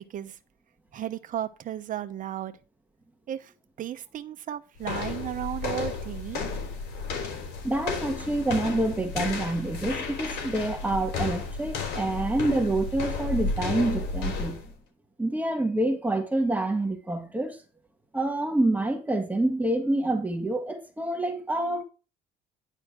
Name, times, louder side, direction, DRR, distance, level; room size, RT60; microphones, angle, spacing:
voice 1, 0.9-2.6 3.3-3.5 3.8-6.4, right 11 dB, 50° right, 1.0 m, -34 dB
sound 1, 4.8-14.7, left 4 dB, 80° left, 3.7 m, -33 dB
voice 2, 7.6-14.7 15.2-17.6 18.1-21.8, right 2 dB, 10° right, 1.7 m, -27 dB
10.0 x 4.3 x 6.0 m
cardioid pair, 110°, 17 cm